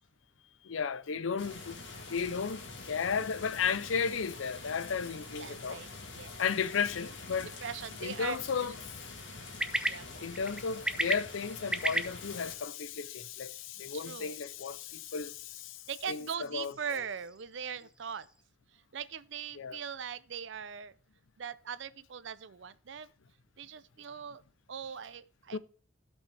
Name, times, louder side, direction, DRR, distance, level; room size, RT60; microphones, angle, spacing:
voice 1, 0.6-1.8 2.1-5.8 6.4-7.5 8.0-8.7 10.2-17.0 19.6-19.8 25.5-25.6, left 6 dB, 85° left, 0.5 m, -34 dB
sound 1, 1.4-12.5, left 3 dB, 65° left, 2.1 m, -46 dB
voice 2, 5.4-6.4 7.6-8.7 9.8-10.3 13.9-14.4 15.9-18.3 18.7-20.9 21.4-23.1 23.6-24.4 24.7-25.6, right 7 dB, 70° right, 0.5 m, -41 dB
sound 2, 6.8-18.4, right 1 dB, 5° right, 0.5 m, -40 dB
16.0 x 5.3 x 3.3 m
head